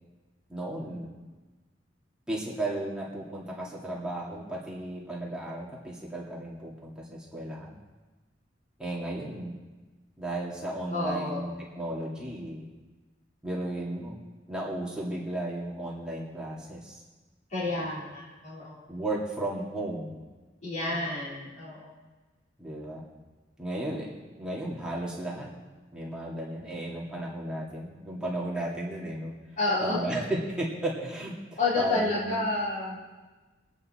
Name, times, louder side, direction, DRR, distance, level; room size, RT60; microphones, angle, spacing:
voice 1, 0.5-1.2 2.3-7.8 8.8-9.6 10.2-12.7 13.4-14.2 14.5-17.0 17.6-17.9 18.9-20.1 20.9-21.1 22.6-23.0 23.6-25.5 25.9-29.3 29.8-32.4, right 1 dB, 5° right, -5 dB, 2.3 m, -34 dB
voice 2, 10.9-11.5 17.5-18.7 20.6-21.9 29.6-30.0 31.6-33.0, left 2 dB, 40° left, -8 dB, 4.1 m, -30 dB
22.5 x 8.6 x 4.3 m, 1.2 s
head